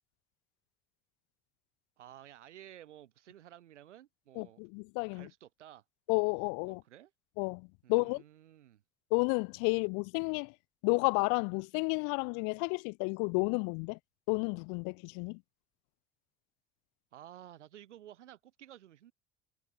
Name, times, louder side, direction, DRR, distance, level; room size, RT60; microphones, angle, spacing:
voice 1, 2.0-4.6 5.1-5.8 6.7-7.1 7.8-8.8 17.1-19.1, right 12 dB, 85° right, 1.7 m, -53 dB
voice 2, 4.4-5.3 6.1-6.8 7.4-8.2 9.1-10.5 10.8-14.0 14.3-15.4, left 37 dB, 60° left, 0.5 m, -31 dB
hypercardioid pair, 65°, 35 cm